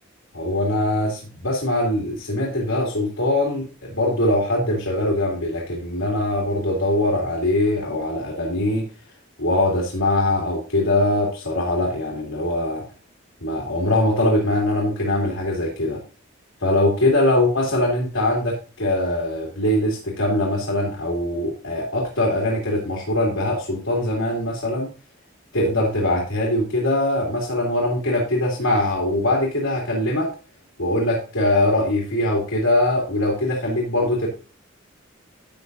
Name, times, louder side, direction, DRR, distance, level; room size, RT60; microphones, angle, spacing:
voice 1, 0.3-8.9 9.4-12.8 13.4-16.0 16.6-24.9 25.5-30.3 30.8-34.3, left 1 dB, 85° left, -3 dB, 2.8 m, -22 dB
12.0 x 7.4 x 2.7 m, 0.33 s
head